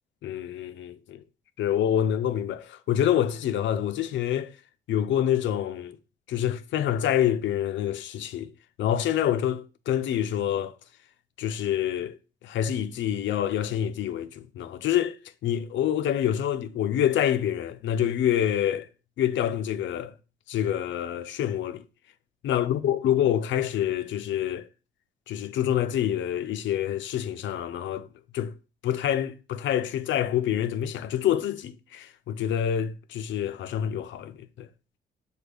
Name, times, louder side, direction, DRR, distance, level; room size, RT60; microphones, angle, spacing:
voice 1, 0.2-1.2 1.6-4.5 4.9-6.0 6.3-8.5 8.8-10.8 11.4-12.2 12.4-15.2 15.4-18.9 19.2-20.1 20.5-21.8 22.4-24.7 25.3-28.1 28.3-28.5 28.8-34.7, left 10 dB, 70° left, 0.4 m, -27 dB
6.2 x 2.3 x 3.4 m
cardioid pair, 90°, 20 cm